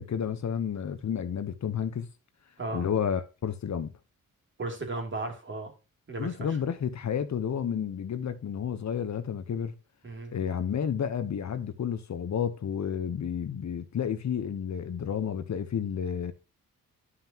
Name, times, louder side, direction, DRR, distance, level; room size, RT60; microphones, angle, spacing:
voice 1, 0.0-2.1 2.7-3.9 6.2-9.7 10.3-16.3, left 8 dB, 50° left, 1.0 m, -31 dB
voice 2, 2.6-2.9 4.6-5.7 6.1-6.6 10.0-10.4, right 2 dB, 35° right, 3.1 m, -35 dB
11.5 x 5.8 x 2.9 m
cardioid pair, 95°, 35 cm